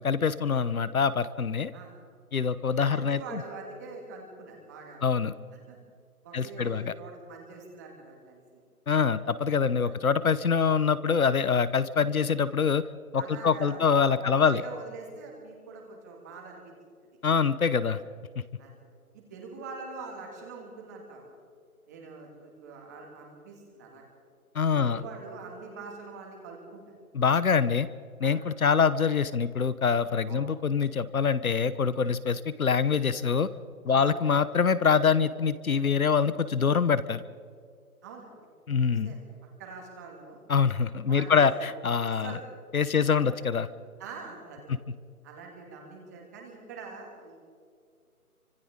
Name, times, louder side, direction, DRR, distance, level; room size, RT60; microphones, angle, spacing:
voice 1, 0.0-1.7 2.3-3.4 5.0-5.3 6.3-6.9 8.9-12.8 13.1-14.6 17.2-18.0 24.5-25.0 27.1-27.9 28.2-33.5 33.8-37.2 38.7-39.1 40.5-42.4 42.7-43.7, left 6 dB, 70° left, 15 dB, 1.0 m, -25 dB
voice 2, 2.9-5.0 5.7-5.8 6.2-8.6 9.8-9.9 13.2-16.7 17.8-18.0 18.6-18.8 19.1-21.4 21.9-24.0 24.7-26.8 28.2-28.4 30.3-30.5 33.9-34.1 38.0-38.3 38.9-39.3 39.6-40.4 41.1-41.7 42.2-42.4 42.9-43.2 44.0-44.7 45.2-47.4, right 4 dB, 10° right, 0 dB, 2.1 m, -44 dB
29.0 x 25.5 x 3.7 m, 2.2 s
hypercardioid pair, 170°, 44 cm